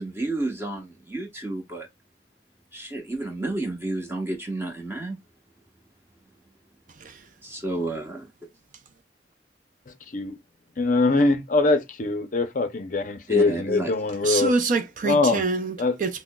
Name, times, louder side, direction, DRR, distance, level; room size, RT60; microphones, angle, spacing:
voice 1, 0.0-1.9 2.7-5.2 7.4-8.3 13.3-13.9, right 2 dB, 15° right, 1.0 m, -31 dB
voice 2, 10.8-14.5 15.0-15.4 15.8-15.9, left 3 dB, 45° left, 0.5 m, -22 dB
voice 3, 14.2-16.2, right 3 dB, 45° right, 0.4 m, -26 dB
5.9 x 2.0 x 2.2 m
head